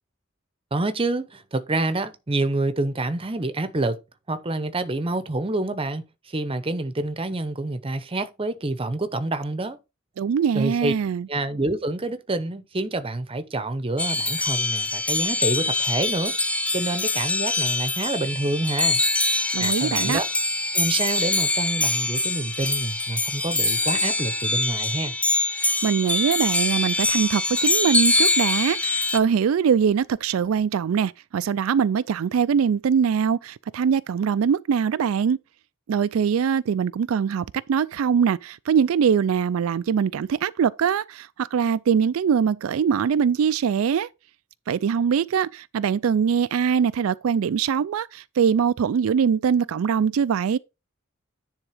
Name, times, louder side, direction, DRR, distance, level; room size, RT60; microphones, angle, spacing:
voice 1, 0.7-4.0 4.3-9.8 10.5-10.9 11.3-16.3 16.7-19.0 19.6-20.3 20.7-25.1, right 2 dB, 25° right, 0.8 m, -27 dB
voice 2, 10.2-11.3 19.5-20.2 25.6-35.4 35.9-44.1 44.7-50.6, right 7 dB, 90° right, 0.4 m, -22 dB
sound 1, 14.0-29.2, left 2 dB, 5° left, 0.5 m, -24 dB
9.9 x 3.6 x 5.0 m
head